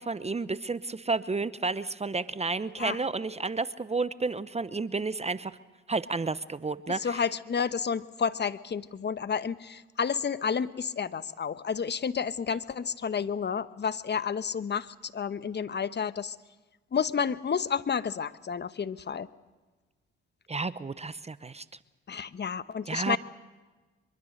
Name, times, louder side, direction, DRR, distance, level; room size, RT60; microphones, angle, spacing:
voice 1, 0.0-5.5 5.9-7.2 20.5-21.6 22.9-23.2, right 3 dB, 20° right, 15 dB, 0.8 m, -31 dB
voice 2, 7.0-16.3 16.9-19.3 22.1-23.2, left 6 dB, 35° left, 14 dB, 1.0 m, -30 dB
24.0 x 23.0 x 6.6 m, 1.3 s
supercardioid pair, 60°, 29 cm